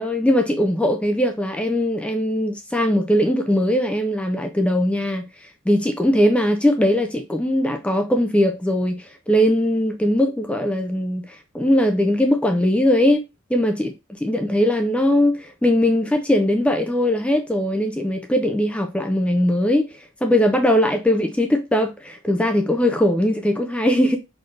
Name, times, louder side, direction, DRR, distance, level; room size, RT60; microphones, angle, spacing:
voice 1, 0.0-13.2 13.5-24.2, left 1 dB, 5° left, 0.3 m, -20 dB
4.0 x 2.6 x 3.1 m
head